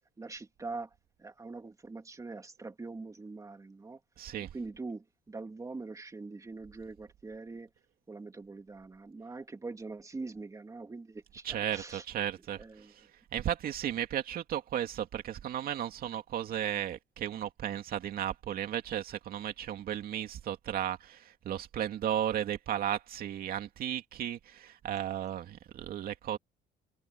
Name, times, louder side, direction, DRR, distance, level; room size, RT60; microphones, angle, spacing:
voice 1, 0.2-0.9 1.2-4.0 4.5-7.7 8.1-12.0 12.6-12.9, right 3 dB, 20° right, 2.8 m, -43 dB
voice 2, 4.2-4.5 11.4-26.4, right 10 dB, 60° right, 2.5 m, -35 dB
cardioid pair, 110°, 17 cm